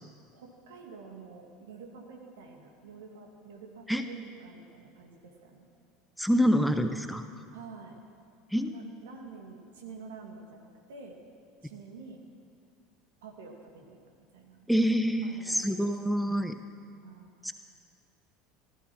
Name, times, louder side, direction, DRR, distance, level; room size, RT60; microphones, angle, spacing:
voice 1, 0.3-5.7 7.5-8.0 8.7-11.2 11.6-12.2 13.2-14.0 14.3-14.7 15.2-15.9 17.0-17.3, right 4 dB, 70° right, 2 dB, 2.2 m, -48 dB
voice 2, 6.2-7.2 8.5-8.7 14.7-16.6 17.4-17.5, equal, ahead, 8 dB, 0.8 m, -26 dB
15.5 x 13.5 x 6.2 m, 2.2 s
figure-of-eight pair, 70°, 0 cm